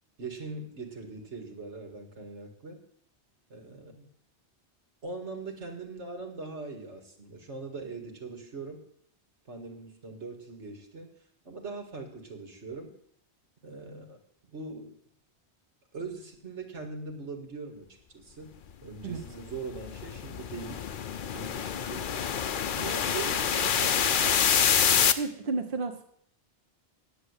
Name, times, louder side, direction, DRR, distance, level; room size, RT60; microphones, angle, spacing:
voice 1, 0.2-2.8 3.5-4.1 5.0-8.8 9.5-11.1 11.4-12.9 13.6-15.0 15.9-17.9 18.1-18.6 18.8-20.9 21.3-22.1 22.7-24.7, right 4 dB, 85° right, 4 dB, 2.3 m, -41 dB
sound 1, 19.1-25.1, left 8 dB, 55° left, 0.8 m, -27 dB
voice 2, 25.2-26.0, right 3 dB, 50° right, 6 dB, 1.2 m, -32 dB
9.7 x 7.8 x 8.1 m, 0.65 s
omnidirectional pair, 1.2 m